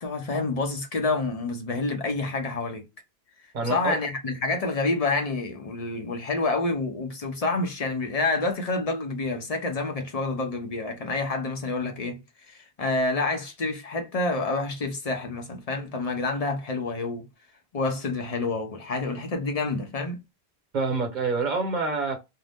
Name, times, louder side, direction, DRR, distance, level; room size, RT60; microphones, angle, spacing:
voice 1, 0.0-2.8 3.6-12.2 12.8-17.3 17.7-20.2, left 3 dB, 40° left, 0.7 m, -28 dB
voice 2, 3.5-4.0 20.7-22.2, right 3 dB, 50° right, 1.1 m, -26 dB
2.6 x 2.2 x 3.3 m
omnidirectional pair, 1.0 m